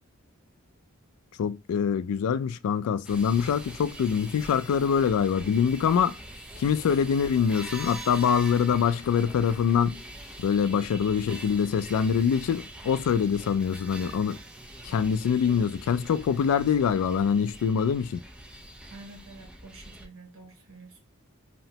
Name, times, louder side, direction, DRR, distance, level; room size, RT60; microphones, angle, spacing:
voice 1, 1.4-6.2 6.6-10.0 10.4-14.4 14.8-18.2, left 7 dB, 80° left, 0.3 m, -24 dB
sound 1, 3.0-20.1, right 1 dB, 5° right, 0.4 m, -43 dB
voice 2, 18.9-21.0, right 2 dB, 70° right, 1.0 m, -48 dB
2.8 x 2.1 x 2.7 m
head